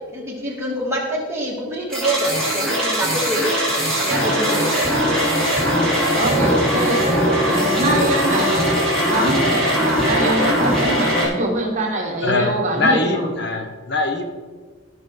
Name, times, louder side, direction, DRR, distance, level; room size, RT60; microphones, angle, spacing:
voice 1, 0.1-3.4 4.0-4.7, right 1 dB, 10° right, -4 dB, 2.2 m, -25 dB
sound 1, 1.9-11.3, equal, 5° left, 3.1 m, -20 dB
voice 2, 6.1-13.3, right 1 dB, 35° right, 0 dB, 1.5 m, -24 dB
voice 3, 12.2-14.3, left 2 dB, 55° left, 5 dB, 1.0 m, -22 dB
16.0 x 5.9 x 3.9 m, 1.4 s
head